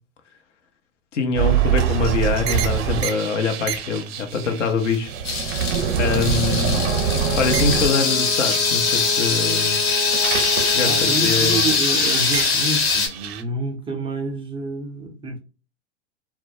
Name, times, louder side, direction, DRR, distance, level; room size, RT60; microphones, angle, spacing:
voice 1, 1.1-5.6 6.0-6.9 7.4-9.8 10.6-10.9 11.2-11.6, left 5 dB, 80° left, 0.7 m, -24 dB
sound 1, 1.3-9.3 9.7-13.4, right 8 dB, 60° right, 0.6 m, -25 dB
sound 2, 5.2-13.1, left 4 dB, 55° left, 1.2 m, -22 dB
Brass instrument, 6.7-11.2, left 3 dB, 35° left, 0.6 m, -31 dB
voice 2, 10.9-15.4, right 2 dB, 15° right, 0.3 m, -28 dB
2.2 x 2.1 x 2.7 m
hypercardioid pair, 100°, 36 cm